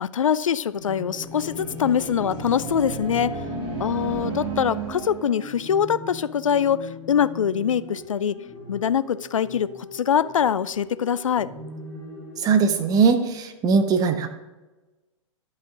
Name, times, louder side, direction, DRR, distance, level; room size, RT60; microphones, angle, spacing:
voice 1, 0.0-3.4 3.8-8.4 8.7-11.5, left 8 dB, 75° left, 16 dB, 0.4 m, -23 dB
sound 1, 0.8-12.8, left 3 dB, 10° left, 3.2 m, -40 dB
sound 2, 0.8-5.5, right 4 dB, 45° right, 2.1 m, -33 dB
voice 2, 12.4-14.3, right 5 dB, 20° right, 7 dB, 0.8 m, -20 dB
11.5 x 5.6 x 3.7 m, 1.1 s
figure-of-eight pair, 110°, 17 cm